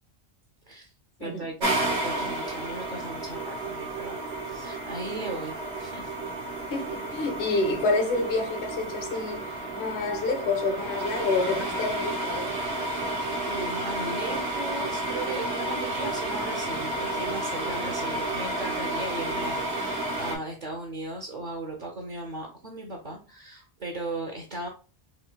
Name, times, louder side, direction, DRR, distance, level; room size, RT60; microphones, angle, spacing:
voice 1, 1.2-4.2 4.4-6.1 13.5-24.7, right 2 dB, 50° right, 0.7 m, -37 dB
sound 1, 1.6-20.4, right 2 dB, 70° right, 1.1 m, -31 dB
voice 2, 6.7-9.5 9.7-12.5, left 3 dB, 80° left, 1.1 m, -28 dB
4.4 x 2.6 x 2.2 m
omnidirectional pair, 1.1 m